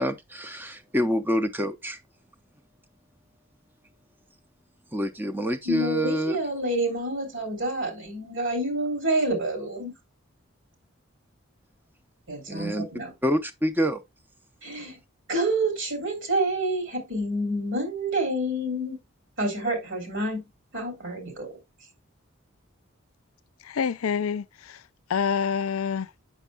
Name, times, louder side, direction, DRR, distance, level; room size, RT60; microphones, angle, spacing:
voice 1, 0.0-2.0 4.9-6.4 12.5-12.9 13.2-14.0, equal, 10° right, 0.6 m, -27 dB
voice 2, 5.6-9.9 12.3-13.1 14.6-15.0 15.3-19.0 19.4-20.4 20.7-21.6, right 1 dB, 65° right, 3.2 m, -28 dB
voice 3, 23.7-24.8 25.1-26.1, left 6 dB, 75° left, 0.5 m, -27 dB
8.1 x 6.3 x 2.2 m
head